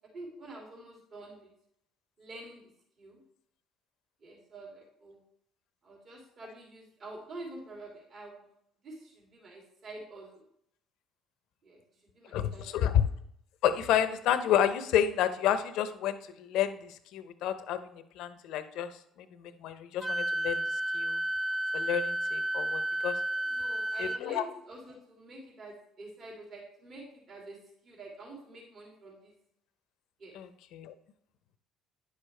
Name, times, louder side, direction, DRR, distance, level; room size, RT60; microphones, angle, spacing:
voice 1, 0.1-1.5 2.2-2.7 3.0-3.2 4.2-5.2 5.8-8.5 8.8-10.4 11.6-12.9 23.4-29.3 30.2-30.4, right 2 dB, 50° right, -2 dB, 2.8 m, -47 dB
voice 2, 12.3-12.9 13.6-18.9 19.2-20.6 20.9-21.2 21.7-23.1 24.0-24.4 30.4-30.9, left 10 dB, 75° left, 11 dB, 0.7 m, -30 dB
Wind instrument woodwind instrument, 20.0-24.2, right 1 dB, 20° right, 0.5 m, -32 dB
9.7 x 6.5 x 3.3 m, 0.71 s
supercardioid pair, 75°, 0 cm